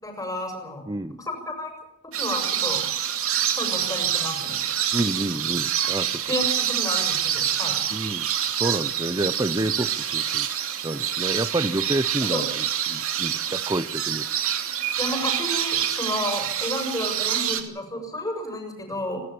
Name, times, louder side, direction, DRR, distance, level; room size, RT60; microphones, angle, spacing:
voice 1, 0.0-0.9 1.2-1.8 2.0-2.8 3.6-4.6 6.3-7.8 12.2-12.4 15.0-19.2, left 1 dB, 15° left, 4 dB, 7.0 m, -31 dB
voice 2, 0.9-1.2 4.9-6.3 7.9-8.3 8.5-10.5 10.8-14.2, right 2 dB, 20° right, 10 dB, 0.8 m, -28 dB
sound 1, 2.1-17.6, right 10 dB, 65° right, 2.6 m, -26 dB
27.5 x 12.5 x 8.7 m, 0.80 s
head